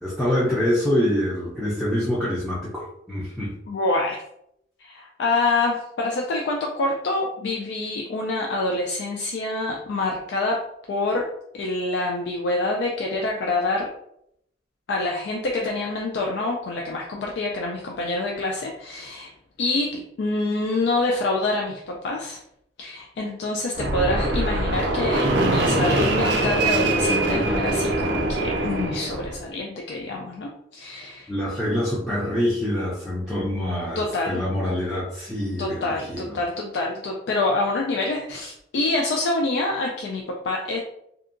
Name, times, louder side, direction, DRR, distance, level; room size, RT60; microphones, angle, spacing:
voice 1, 0.0-3.5 31.3-36.4, left 1 dB, ahead, -9 dB, 0.5 m, -25 dB
voice 2, 3.7-4.2 4.8-11.3 11.5-13.9 14.9-19.3 19.6-22.4 22.8-31.3 34.0-34.4 35.6-40.8, left 2 dB, 70° left, -1 dB, 0.4 m, -26 dB
Fixed-wing aircraft airplane, 23.7-29.4, right 2 dB, 75° right, 0.5 m, -23 dB
2.7 x 2.3 x 2.5 m, 0.76 s
head